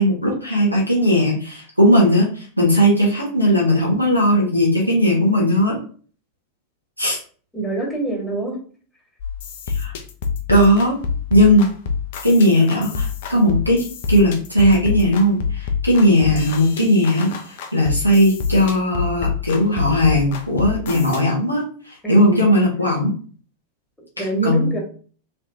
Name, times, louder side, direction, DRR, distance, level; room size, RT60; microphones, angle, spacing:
voice 1, 0.0-5.7 7.0-7.2 9.7-9.9 10.5-10.9 11.3-11.7 12.2-23.1 24.2-24.8, equal, 90° right, -3 dB, 1.3 m, -17 dB
voice 2, 7.5-8.6 22.0-22.6 24.2-24.8, right 2 dB, 5° left, -1 dB, 1.4 m, -25 dB
sound 1, 9.2-21.2, left 6 dB, 55° left, 0.6 m, -27 dB
3.4 x 3.3 x 2.7 m, 0.42 s
figure-of-eight pair, 90°, 0 cm